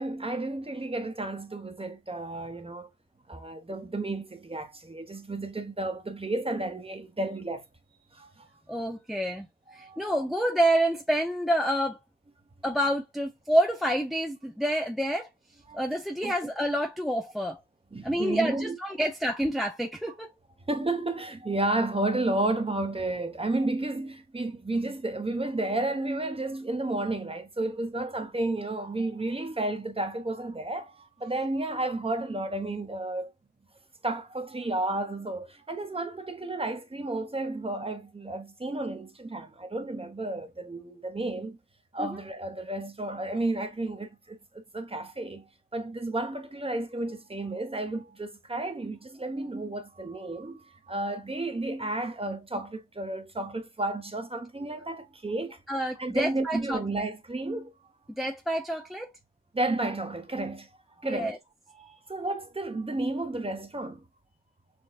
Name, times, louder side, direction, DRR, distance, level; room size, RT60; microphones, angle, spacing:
voice 1, 0.0-2.9 3.3-7.6 8.1-8.5 8.8-8.9 9.7-10.3 15.7-15.8 16.2-16.3 17.9-18.8 20.7-33.3 34.0-41.6 41.9-55.6 56.0-57.7 59.5-60.7 61.0-61.4 61.8-64.0, right 2 dB, 15° right, 1.0 m, -32 dB
voice 2, 8.7-9.5 9.7-12.0 12.6-15.3 15.7-17.6 18.0-20.3 42.0-42.2 55.7-56.8 58.2-59.1 61.0-61.4, right 1 dB, ahead, 0.5 m, -28 dB
6.2 x 2.3 x 2.3 m
cardioid pair, 60°, 32 cm